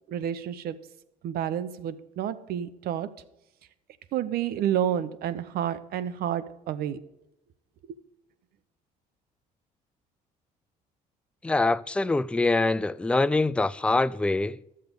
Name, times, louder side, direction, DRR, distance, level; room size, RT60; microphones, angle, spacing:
voice 1, 0.1-0.8 1.2-3.2 4.1-7.0 7.9-8.0, right 10 dB, 70° right, 0.8 m, -30 dB
voice 2, 11.4-14.6, left 2 dB, 5° left, 0.3 m, -24 dB
12.0 x 7.6 x 5.3 m
supercardioid pair, 75°, 17 cm